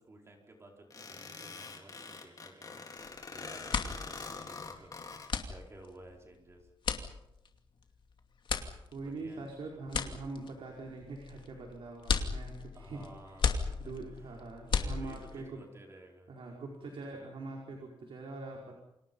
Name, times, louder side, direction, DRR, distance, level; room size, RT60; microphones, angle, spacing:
voice 1, 0.0-2.8 3.3-6.7 9.0-9.4 12.7-14.3 14.6-16.3, right 2 dB, 30° right, 1 dB, 4.7 m, -54 dB
sound 1, 0.9-5.3, left 4 dB, 40° left, 4.3 m, -44 dB
sound 2, 3.0-3.2 3.5-15.5, left 5 dB, 60° left, 2.6 m, -36 dB
voice 2, 8.9-15.6 16.3-18.7, right 3 dB, 70° right, 0 dB, 5.0 m, -43 dB
29.5 x 26.5 x 5.6 m, 0.86 s
wide cardioid pair, 175°, 9 cm